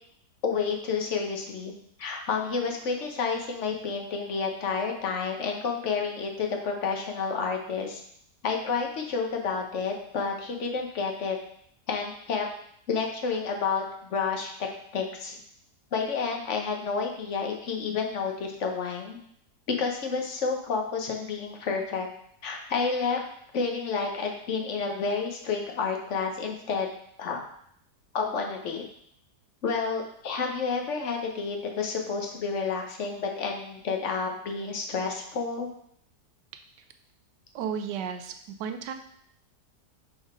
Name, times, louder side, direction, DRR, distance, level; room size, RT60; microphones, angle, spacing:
voice 1, 0.4-1.7 2.0-8.0 8.4-11.4 11.9-12.5 12.9-14.5 14.9-15.4 15.9-19.2 19.8-22.1 22.4-23.2 23.5-26.9 27.2-27.4 28.1-28.8 29.6-35.7, left 5 dB, 50° left, 2 dB, 1.2 m, -30 dB
voice 2, 37.5-38.3 38.6-38.9, right 7 dB, 85° right, 7 dB, 1.3 m, -32 dB
6.4 x 3.9 x 4.9 m, 0.68 s
omnidirectional pair, 1.8 m